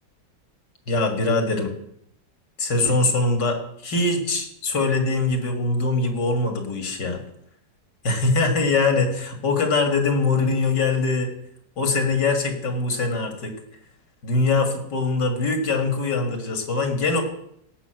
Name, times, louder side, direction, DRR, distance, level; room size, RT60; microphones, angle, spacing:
voice 1, 0.9-1.7 2.6-7.2 8.0-11.3 11.8-13.5 14.2-17.2, left 3 dB, 70° left, 5 dB, 2.5 m, -22 dB
17.0 x 5.8 x 7.7 m, 0.73 s
omnidirectional pair, 1.9 m